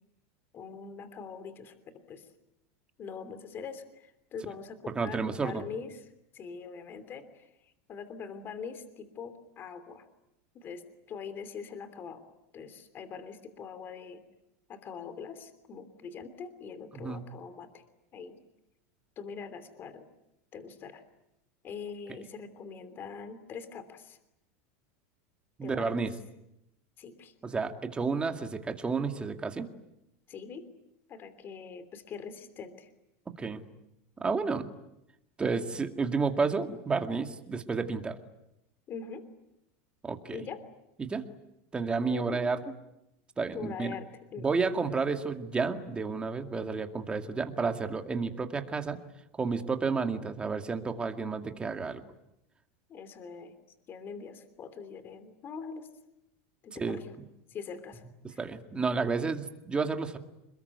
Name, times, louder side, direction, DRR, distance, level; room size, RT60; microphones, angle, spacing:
voice 1, 0.5-2.3 3.0-6.1 6.3-10.1 10.5-12.2 12.5-14.2 14.7-17.8 18.1-18.4 19.2-20.0 20.5-21.0 21.6-24.2 25.6-26.0 27.0-27.3 30.3-30.7 31.1-32.9 38.9-39.2 40.3-40.6 42.1-42.5 43.5-44.5 52.9-53.5 53.9-55.9 56.6-57.1 57.5-58.0 58.3-58.4, left 6 dB, 30° left, 11 dB, 3.1 m, -43 dB
voice 2, 5.0-5.6 16.9-17.2 25.6-26.1 27.4-29.7 33.4-33.6 34.2-34.7 35.4-38.2 40.0-40.4 41.0-41.2 41.7-42.6 43.4-43.9 44.4-49.0 49.4-52.0 56.8-57.0 58.4-60.2, right 4 dB, 15° right, 6 dB, 2.2 m, -31 dB
28.0 x 22.0 x 9.6 m, 0.85 s
supercardioid pair, 145°, 7 cm